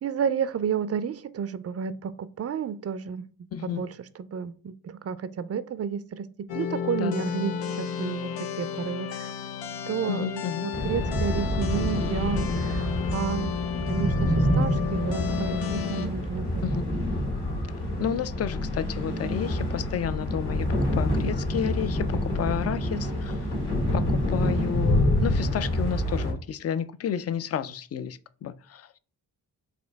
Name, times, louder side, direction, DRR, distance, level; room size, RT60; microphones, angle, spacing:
voice 1, 0.0-3.3 3.6-3.9 4.3-6.3 6.5-9.3 9.9-13.5 13.9-16.6, right 7 dB, 35° right, 0.4 m, -31 dB
voice 2, 3.5-3.9 7.0-7.3 10.1-10.7 16.6-16.8 18.0-23.4 23.9-29.0, left 8 dB, 35° left, 0.4 m, -31 dB
sound 1, 6.5-16.1, left 7 dB, 85° left, 0.6 m, -32 dB
sound 2, 10.7-26.3, equal, 65° left, 1.8 m, -27 dB
4.3 x 2.6 x 3.4 m
supercardioid pair, 40°, 43 cm